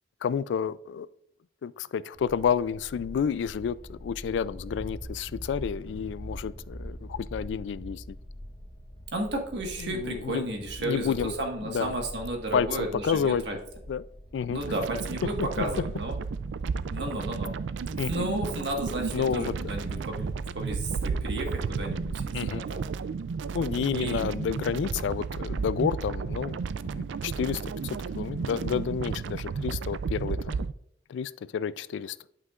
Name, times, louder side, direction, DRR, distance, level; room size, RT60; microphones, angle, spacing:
voice 1, 0.2-1.1 1.6-8.2 9.8-10.5 10.8-11.3 11.6-11.9 12.5-13.4 13.9-14.1 14.3-14.6 15.6-15.7 18.0-18.3 19.1-19.5 22.3-22.6 23.5-26.6 26.9-30.6 31.1-32.2, left 7 dB, 85° left, 0.3 m, -30 dB
sound 1, 2.1-22.1, equal, 25° left, 1.4 m, -43 dB
voice 2, 9.1-13.6 14.5-16.2 16.9-17.5 17.9-22.9 23.9-24.3, right 1 dB, 70° right, 1.5 m, -33 dB
sound 2, 14.6-30.7, right 5 dB, 90° right, 0.3 m, -33 dB
11.0 x 5.7 x 2.4 m
head